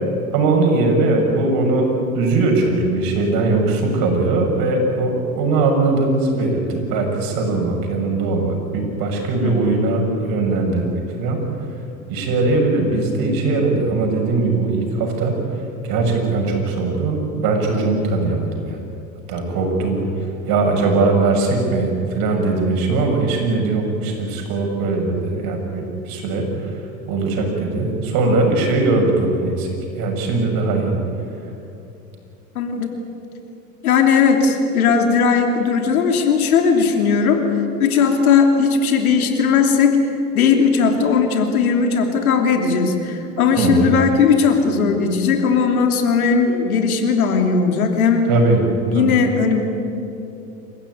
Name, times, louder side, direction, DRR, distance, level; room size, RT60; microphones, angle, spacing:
voice 1, 0.3-11.4 12.1-15.4 15.8-18.8 19.3-26.7 27.1-31.0 43.6-44.0 48.3-48.7 48.9-49.2, right 3 dB, 55° right, 2 dB, 6.7 m, -20 dB
voice 2, 9.4-9.8 32.5-32.9 33.8-37.4 37.8-40.0 40.3-48.2 48.9-49.6, left 5 dB, 80° left, 4 dB, 3.1 m, -17 dB
28.0 x 15.5 x 9.5 m, 2.7 s
hypercardioid pair, 85°, 42 cm